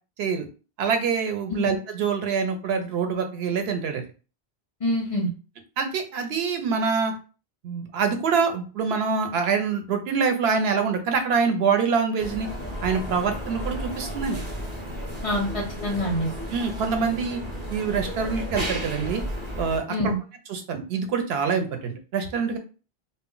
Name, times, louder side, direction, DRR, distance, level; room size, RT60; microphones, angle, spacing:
voice 1, 0.8-4.0 5.8-7.1 7.6-12.5 12.8-14.4 16.5-17.4 17.7-19.2 19.6-19.8 20.5-22.6, right 5 dB, 75° right, 6 dB, 0.8 m, -25 dB
voice 2, 4.8-5.3 15.2-16.3 19.9-20.2, left 1 dB, 45° left, 0 dB, 0.4 m, -26 dB
sound 1, 12.2-19.8, equal, 30° right, 0.7 m, -33 dB
2.1 x 2.1 x 3.7 m, 0.35 s
omnidirectional pair, 1.1 m